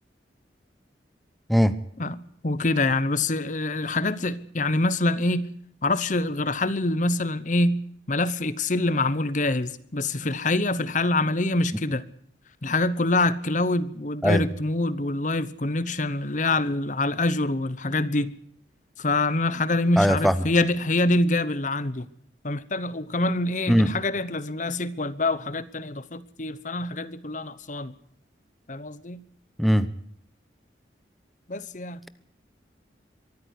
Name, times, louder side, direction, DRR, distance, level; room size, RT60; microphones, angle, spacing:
voice 1, 2.0-5.6 5.8-12.0 12.6-18.4 19.0-22.1 22.4-27.9 28.7-29.3 31.5-32.1, left 2 dB, 45° left, 1.0 m, -25 dB
voice 2, 20.0-20.3 23.7-23.9 29.6-29.9, equal, ahead, 0.8 m, -19 dB
23.5 x 14.0 x 8.3 m
head